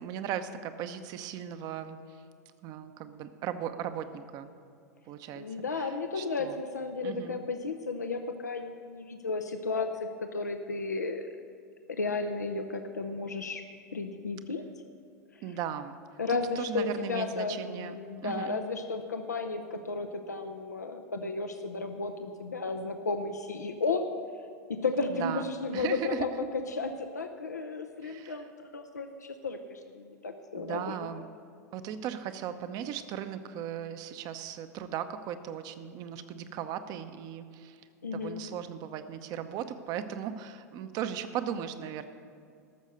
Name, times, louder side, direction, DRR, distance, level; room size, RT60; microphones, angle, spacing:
voice 1, 0.0-2.0 2.6-4.5 5.1-5.4 5.8-6.6 7.0-7.4 15.4-16.0 16.3-17.9 18.2-18.6 25.1-26.3 28.0-28.4 30.6-31.2 31.7-37.8 38.1-42.1, right 9 dB, 45° right, 10 dB, 0.8 m, -37 dB
voice 2, 5.4-9.9 10.2-11.3 11.9-13.6 13.9-14.6 16.2-24.1 24.7-26.3 26.7-31.0 38.0-38.4, left 3 dB, 85° left, 6 dB, 0.6 m, -33 dB
13.5 x 6.4 x 6.5 m, 2.3 s
figure-of-eight pair, 90°, 9 cm